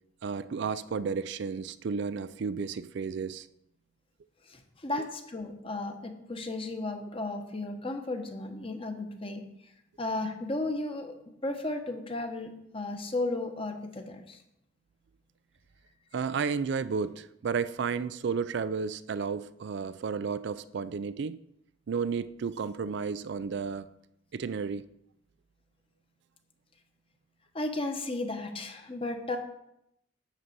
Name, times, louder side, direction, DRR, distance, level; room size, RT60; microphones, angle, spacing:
voice 1, 0.2-3.5 16.1-21.4 21.9-23.9 24.3-24.9, right 5 dB, 60° right, 0.4 m, -32 dB
voice 2, 4.5-9.7 10.0-11.1 11.4-14.4 27.5-29.4, left 2 dB, 30° left, 1.1 m, -34 dB
11.0 x 4.0 x 7.8 m
head